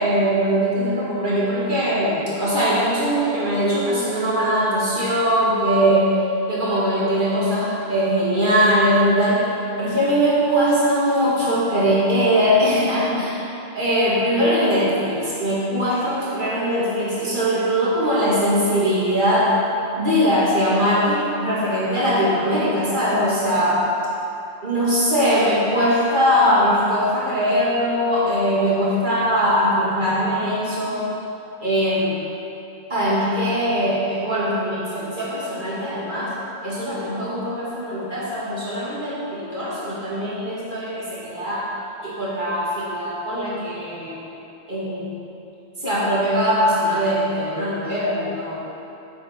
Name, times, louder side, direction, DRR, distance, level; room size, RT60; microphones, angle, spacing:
voice 1, 0.0-6.1 6.5-9.5 9.8-13.5 13.7-19.5 20.0-23.8 24.6-31.1 31.6-32.2 32.9-36.3 36.6-41.6 42.0-44.2 44.7-45.2 45.8-48.6, equal, 50° right, -8 dB, 2.3 m, -21 dB
9.0 x 7.4 x 4.4 m, 2.8 s
omnidirectional pair, 1.0 m